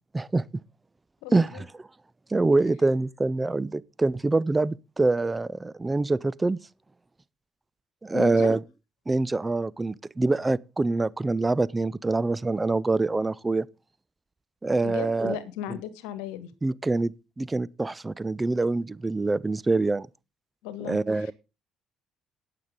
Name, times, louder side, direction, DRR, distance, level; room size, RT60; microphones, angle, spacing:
voice 1, 1.2-1.6 8.1-8.5 14.8-16.5 20.6-21.3, left 11 dB, 75° left, 1.3 m, -36 dB
voice 2, 2.3-6.6 8.0-8.6 9.1-13.7 14.6-15.4 16.6-20.1 20.8-21.3, right 3 dB, 20° right, 0.5 m, -25 dB
18.0 x 6.8 x 3.7 m
hypercardioid pair, 50°, 0 cm